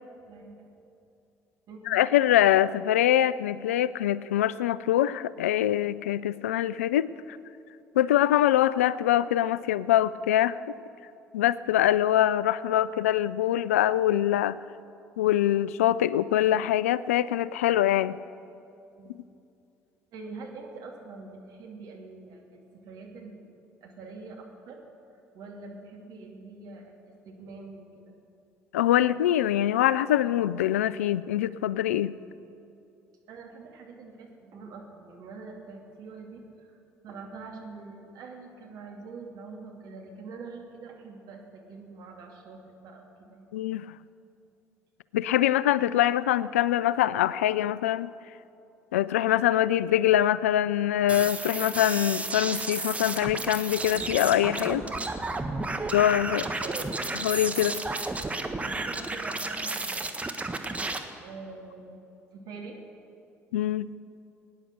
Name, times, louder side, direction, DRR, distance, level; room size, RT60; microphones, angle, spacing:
voice 1, 0.3-0.7 1.7-2.0 19.0-19.2 20.1-23.5 23.8-24.8 25.3-28.1 33.3-36.7 37.0-43.5 56.3-56.9 57.5-60.1 61.2-62.0 62.3-62.8, right 4 dB, 60° right, 1 dB, 2.5 m, -44 dB
voice 2, 1.9-7.1 8.0-10.7 11.3-14.6 15.2-18.2 28.7-32.1 43.5-43.9 45.1-48.1 48.9-54.9 55.9-56.4 57.2-57.7 63.5-63.9, left 12 dB, 80° left, 18 dB, 0.3 m, -24 dB
sound 1, 51.1-61.0, right 2 dB, 20° right, 1.3 m, -32 dB
18.5 x 9.9 x 6.6 m, 2.7 s
hypercardioid pair, 55°, 7 cm